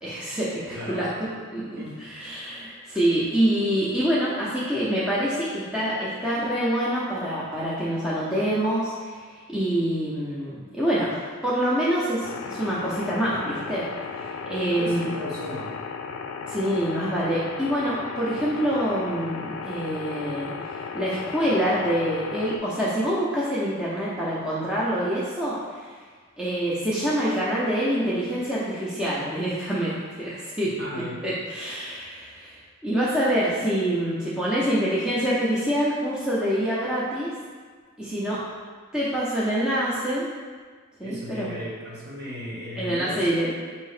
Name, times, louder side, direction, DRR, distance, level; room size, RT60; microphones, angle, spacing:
voice 1, 0.0-9.2 9.5-13.9 14.5-15.1 16.5-20.5 20.9-25.9 26.4-30.7 31.0-32.6 32.8-37.3 38.0-38.4 38.9-40.3 41.0-41.5 42.8-43.5, equal, 5° right, -9 dB, 0.5 m, -26 dB
voice 2, 0.7-1.1 1.8-2.0 14.8-15.7 30.8-31.3 41.0-43.5, equal, 45° right, -5 dB, 0.9 m, -35 dB
sound 1, 12.2-22.6, left 5 dB, 75° left, 0.3 m, -35 dB
4.6 x 2.7 x 3.2 m, 1.5 s
head